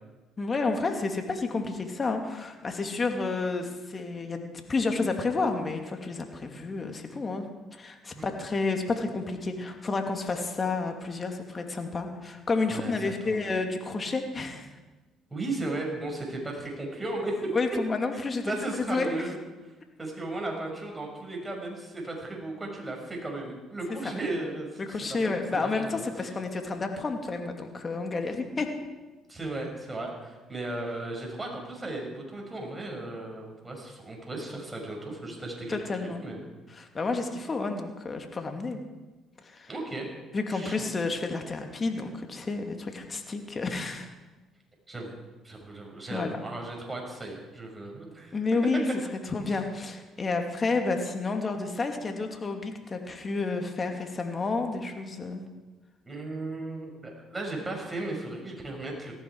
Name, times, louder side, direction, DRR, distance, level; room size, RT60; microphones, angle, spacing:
voice 1, 0.4-7.5 7.7-14.7 17.5-18.5 18.8-19.1 24.0-24.1 24.8-28.7 35.7-36.2 36.7-38.8 39.4-39.7 40.3-44.1 46.1-46.4 48.3-48.9 49.3-55.4, left 3 dB, 35° left, 4 dB, 2.6 m, -30 dB
voice 2, 12.7-13.1 13.4-13.5 15.3-17.5 18.4-19.4 20.0-24.8 25.1-25.3 25.6-26.0 29.3-35.8 36.2-36.4 39.7-40.1 40.5-40.9 44.9-45.2 45.4-48.4 49.5-49.6 56.0-59.2, right 2 dB, 20° right, 0 dB, 6.3 m, -35 dB
18.5 x 14.0 x 4.8 m, 1.2 s
supercardioid pair, 65°, 0 cm